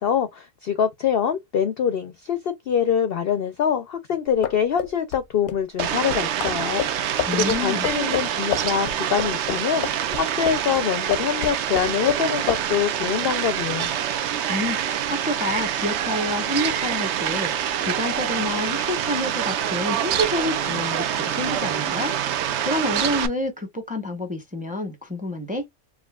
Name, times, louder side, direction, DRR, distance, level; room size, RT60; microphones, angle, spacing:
voice 1, 0.0-13.9, left 8 dB, 65° left, 0.6 m, -24 dB
sound 1, 4.3-10.8 11.1-12.2 12.5-12.7, left 11 dB, 90° left, 1.1 m, -29 dB
Fowl, 5.8-23.3, right 10 dB, 65° right, 0.7 m, -26 dB
voice 2, 7.3-7.9 14.5-25.7, left 1 dB, 5° right, 0.7 m, -28 dB
4.8 x 2.6 x 2.3 m
omnidirectional pair, 1.5 m